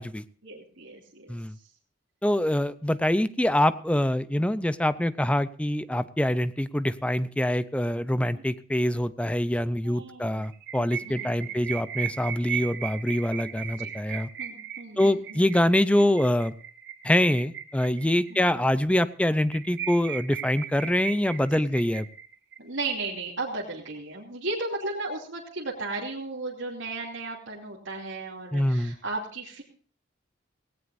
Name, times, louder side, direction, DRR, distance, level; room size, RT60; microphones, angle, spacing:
voice 1, 0.4-1.4 8.3-8.4 9.8-10.5 10.8-11.5 13.8-13.9 14.4-15.4 18.3-18.4 22.6-29.6, right 2 dB, 75° right, -3 dB, 2.8 m, -35 dB
voice 2, 2.2-14.3 15.0-16.5 17.0-22.1 28.5-29.0, left 1 dB, 5° left, 14 dB, 0.5 m, -25 dB
sound 1, 10.4-18.4 18.7-18.8 19.1-19.2 19.5-22.6, right 9 dB, 60° right, 1.3 m, -37 dB
17.5 x 17.0 x 2.6 m, 0.43 s
head